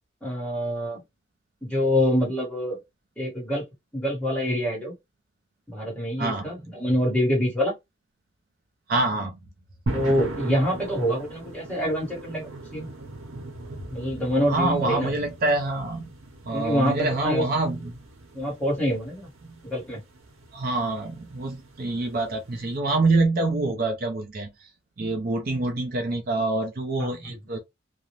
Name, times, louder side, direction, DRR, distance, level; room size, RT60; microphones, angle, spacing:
voice 1, 0.2-1.0 1.6-2.8 3.2-3.6 3.9-4.9 5.7-7.7 9.9-12.9 13.9-15.1 16.5-17.4 18.3-19.3 19.6-20.0 27.0-27.4, equal, 5° left, 1.3 m, -26 dB
voice 2, 6.2-6.5 8.9-9.4 14.5-16.1 16.5-18.0 19.4-19.6 20.5-24.7 25.0-27.6, right 2 dB, 45° right, 0.5 m, -26 dB
sound 1, 9.9-22.8, right 2 dB, 75° right, 0.9 m, -39 dB
2.5 x 2.1 x 3.0 m
head